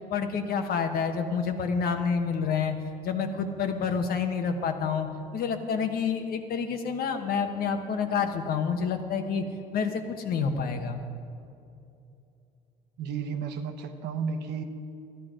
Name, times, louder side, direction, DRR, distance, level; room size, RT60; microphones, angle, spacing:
voice 1, 0.1-2.7 3.0-5.1 5.3-9.4 9.7-11.0, left 6 dB, 60° left, 6 dB, 1.1 m, -28 dB
voice 2, 13.0-14.6, right 6 dB, 80° right, 7 dB, 1.0 m, -32 dB
13.0 x 10.5 x 5.0 m, 2.7 s
cardioid pair, 110°, 17 cm